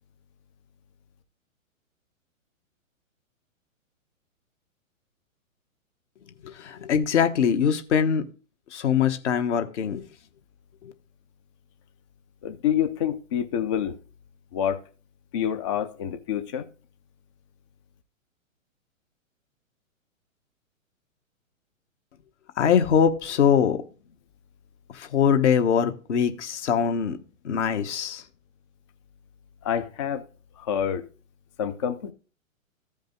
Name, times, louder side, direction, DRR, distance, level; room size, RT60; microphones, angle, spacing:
voice 1, 6.4-8.3 8.7-10.0 10.8-10.9 22.6-23.8 24.9-27.2 27.4-28.2, left 7 dB, 55° left, 1.3 m, -22 dB
voice 2, 12.4-14.0 14.5-14.8 15.3-16.7 29.6-30.2 30.6-31.1 31.6-32.1, left 9 dB, 25° left, 0.4 m, -27 dB
14.5 x 5.2 x 3.6 m
figure-of-eight pair, 120°, 41 cm